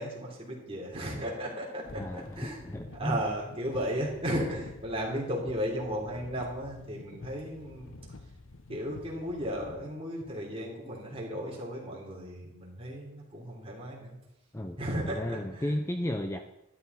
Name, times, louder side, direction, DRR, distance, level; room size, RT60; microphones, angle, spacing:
voice 1, 0.0-2.6 2.9-7.9 8.7-14.1 14.8-15.8, equal, 30° right, -3 dB, 3.3 m, -35 dB
sound 1, 1.8-9.8, left 2 dB, 70° left, 1.0 m, -49 dB
voice 2, 1.9-3.2 14.5-14.8 15.0-16.4, left 1 dB, 15° left, 5 dB, 0.5 m, -34 dB
12.5 x 11.5 x 4.1 m, 0.91 s
head